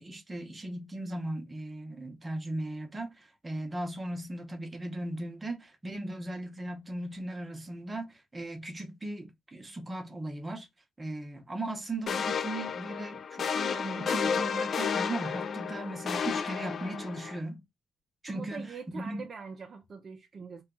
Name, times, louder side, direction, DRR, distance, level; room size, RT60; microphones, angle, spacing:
voice 1, 0.0-10.7 11.0-17.6 18.2-19.2, right 1 dB, 15° right, 0.8 m, -37 dB
sound 1, 12.1-17.4, left 6 dB, 50° left, 0.3 m, -32 dB
voice 2, 18.3-20.6, right 5 dB, 45° right, 0.5 m, -43 dB
2.7 x 2.3 x 3.6 m
cardioid pair, 110°, 0 cm